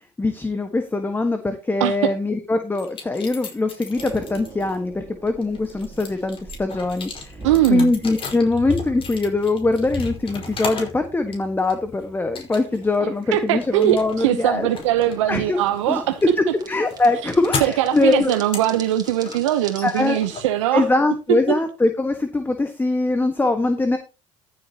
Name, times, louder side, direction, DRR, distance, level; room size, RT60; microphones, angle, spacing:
voice 1, 0.2-7.4 7.7-14.7 15.3-15.6 15.9-16.0 16.4-18.3 19.8-20.2 20.7-24.0, left 2 dB, 15° left, 1.6 m, -22 dB
voice 2, 1.8-2.1 7.4-7.9 13.3-16.2 17.6-20.9 21.3-21.4, right 13 dB, 85° right, 0.9 m, -21 dB
sound 1, 2.7-4.8 5.3-11.0 11.3-11.9 12.3-12.9 13.2-21.2, left 4 dB, 35° left, 5.2 m, -35 dB
sound 2, 4.0-20.2, right 1 dB, 25° right, 3.0 m, -40 dB
14.5 x 7.8 x 3.0 m
supercardioid pair, 90°, 15 cm